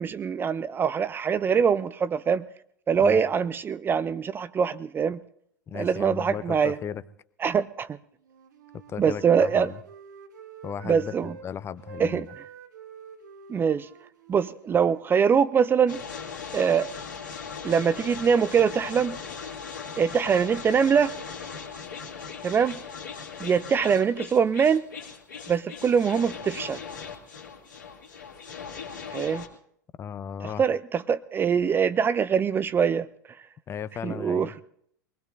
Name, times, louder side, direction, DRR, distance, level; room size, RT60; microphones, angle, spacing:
voice 1, 0.0-2.5 2.9-5.2 5.7-6.8 7.4-8.0 9.0-9.7 10.8-11.3 12.0-12.3 13.5-13.9 14.3-16.0 16.5-16.9 17.6-19.2 20.0-21.1 22.4-22.8 23.4-24.9 25.5-26.8 29.1-29.4 30.4-33.4 34.0-34.5, right 7 dB, 20° right, 16 dB, 0.5 m, -23 dB
voice 2, 5.7-7.0 8.9-9.8 10.6-12.3 30.0-30.6 33.7-34.5, left 7 dB, 25° left, 16 dB, 0.6 m, -36 dB
Wind instrument woodwind instrument, 8.2-11.5 11.8-15.5, right 6 dB, 65° right, 1.4 m, -48 dB
sound 1, 15.9-29.5, left 6 dB, 70° left, 2.5 m, -39 dB
24.0 x 19.5 x 2.7 m, 0.67 s
figure-of-eight pair, 85°, 11 cm